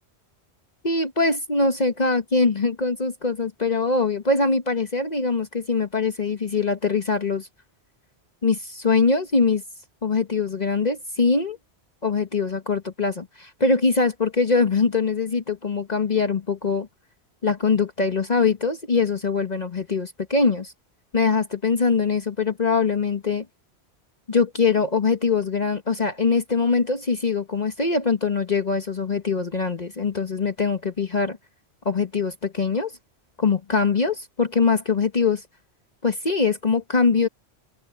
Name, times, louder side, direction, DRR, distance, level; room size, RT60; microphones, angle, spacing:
voice 1, 0.8-7.5 8.4-9.6 10.0-11.6 12.0-16.9 17.4-20.7 21.1-23.4 24.3-31.4 31.8-32.9 33.4-35.4 36.0-37.3, left 4 dB, 40° left, 1.2 m, -22 dB
omnidirectional pair, 1.1 m